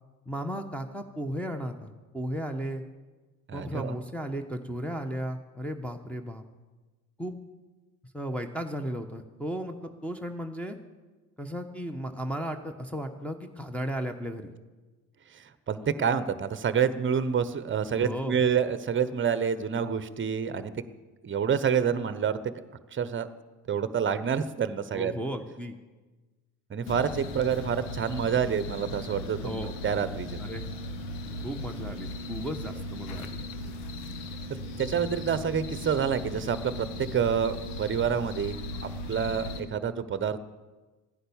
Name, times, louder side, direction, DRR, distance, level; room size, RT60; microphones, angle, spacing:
voice 1, 0.3-2.8 3.5-6.4 7.2-7.4 8.1-10.8 11.4-14.5 18.0-18.4 24.9-25.8 29.4-29.7 30.4-30.7 31.2-33.4, equal, 5° left, 1 dB, 1.3 m, -35 dB
voice 2, 3.5-3.9 15.4-20.8 21.2-22.5 22.9-23.3 23.7-25.2 26.7-30.4 34.8-38.6 39.1-40.4, right 7 dB, 30° right, 14 dB, 1.0 m, -28 dB
sound 1, 26.9-39.6, left 1 dB, 80° left, 1.4 m, -37 dB
14.5 x 10.0 x 7.1 m, 1.2 s
hypercardioid pair, 60°, 42 cm